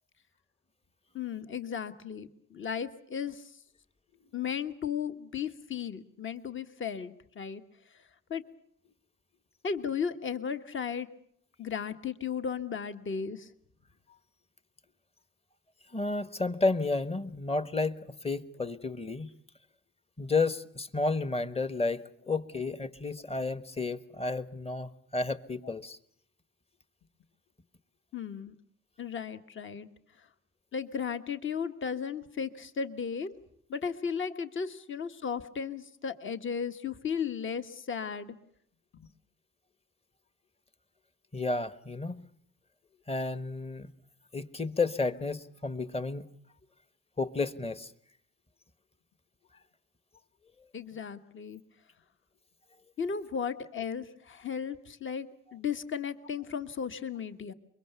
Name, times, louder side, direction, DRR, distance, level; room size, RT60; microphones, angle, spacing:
voice 1, 1.1-3.5 4.3-7.6 7.9-8.0 8.3-8.4 9.6-11.1 11.6-13.5 25.6-25.7 28.1-28.5 29.0-29.9 30.2-30.3 30.7-33.3 33.7-38.3 39.0-39.1 50.7-51.6 53.0-57.5, left 6 dB, 40° left, 11 dB, 1.4 m, -35 dB
voice 2, 15.9-19.3 20.2-26.0 41.3-42.3 43.1-43.9 44.3-46.2 47.2-47.9, left 3 dB, 20° left, 15 dB, 1.2 m, -31 dB
24.0 x 22.5 x 6.9 m, 0.67 s
cardioid pair, 90°, 30 cm